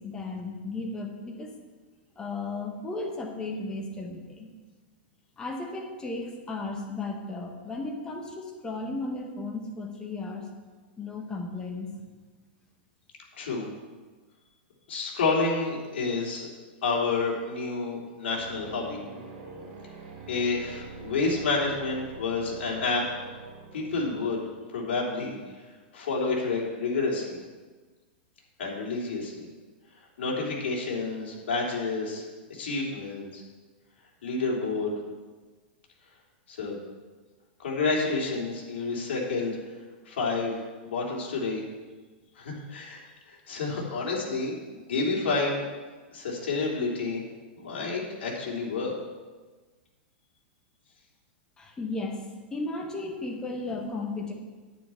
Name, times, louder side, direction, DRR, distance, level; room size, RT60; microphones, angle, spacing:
voice 1, 0.0-1.6 2.2-4.5 5.4-10.5 11.0-11.9 51.6-54.3, left 2 dB, 10° left, 2 dB, 1.3 m, -35 dB
voice 2, 14.9-16.5 16.8-19.0 20.3-23.0 23.7-24.4 24.7-25.4 25.9-27.4 28.6-29.4 30.2-32.2 32.5-33.4 34.2-34.9 36.5-36.8 37.6-39.6 40.1-41.6 42.3-45.6 46.1-47.2 47.6-48.9, left 3 dB, 80° left, -2 dB, 3.2 m, -29 dB
sound 1, 18.3-24.6, right 4 dB, 55° right, 2.6 m, -44 dB
9.5 x 9.2 x 4.5 m, 1.3 s
supercardioid pair, 160°, 6 cm